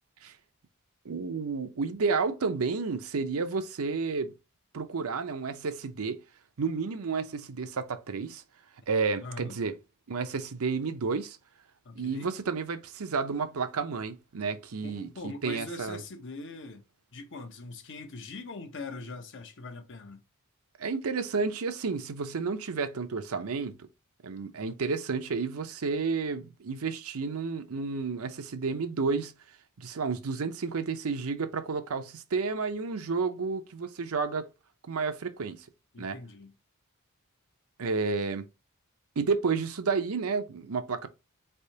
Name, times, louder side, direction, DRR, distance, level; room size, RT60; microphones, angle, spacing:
voice 1, 1.0-4.3 4.7-6.2 6.6-8.4 8.9-9.7 10.1-11.4 12.0-16.0 20.8-23.8 24.2-29.3 29.8-34.5 34.9-35.6 36.0-36.2 37.8-38.4 39.2-41.1, right 4 dB, 70° right, 0.6 m, -31 dB
voice 2, 9.2-9.6 11.8-12.3 14.8-16.8 17.1-20.2 35.9-36.5, left 3 dB, 55° left, 0.9 m, -42 dB
4.3 x 3.4 x 2.8 m
head